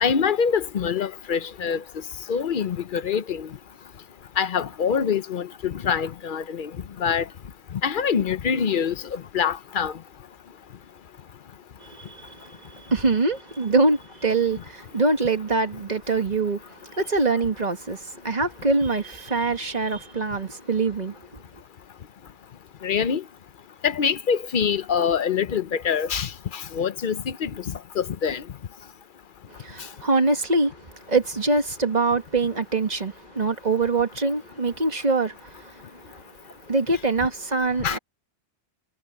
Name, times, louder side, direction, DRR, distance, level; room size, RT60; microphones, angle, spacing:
voice 1, 0.0-1.8 2.3-3.5 4.4-6.7 7.0-7.3 7.8-9.9 22.8-23.2 23.8-27.5 28.0-28.4 37.8-38.0, left 7 dB, 50° left, 0.8 m, -25 dB
voice 2, 11.8-21.2 29.5-36.2 36.6-38.0, right 3 dB, 35° right, 1.8 m, -24 dB
omnidirectional pair, 1.2 m